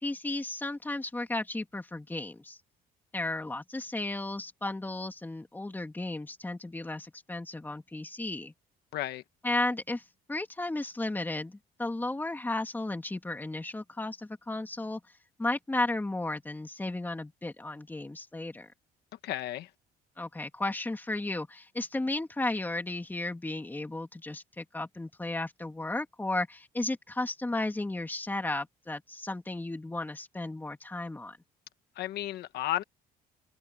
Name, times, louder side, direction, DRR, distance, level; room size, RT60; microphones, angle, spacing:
voice 1, 0.0-2.6 3.1-8.5 9.4-10.0 10.3-15.0 15.4-18.7 20.2-31.4, left 2 dB, 10° left, 2.8 m, -34 dB
voice 2, 8.9-9.2 19.2-19.7 32.0-32.8, left 13 dB, 75° left, 1.2 m, -33 dB
cardioid pair, 110°, 17 cm